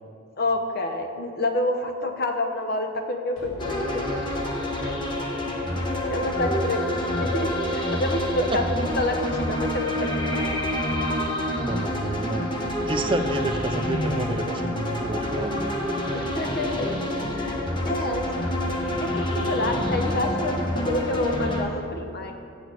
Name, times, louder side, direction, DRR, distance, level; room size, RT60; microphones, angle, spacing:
voice 1, 0.4-4.5 4.8-5.0 6.1-10.6 10.8-11.1 16.1-16.9 17.3-22.4, left 2 dB, 50° left, 5 dB, 0.8 m, -28 dB
sound 1, 3.4-21.8, equal, 85° left, 1.8 m, -40 dB
sound 2, 3.6-21.6, left 1 dB, 25° left, 1.0 m, -27 dB
voice 2, 11.6-12.5 12.9-15.6, right 2 dB, 25° right, 7 dB, 0.4 m, -30 dB
8.6 x 6.2 x 6.2 m, 2.5 s
head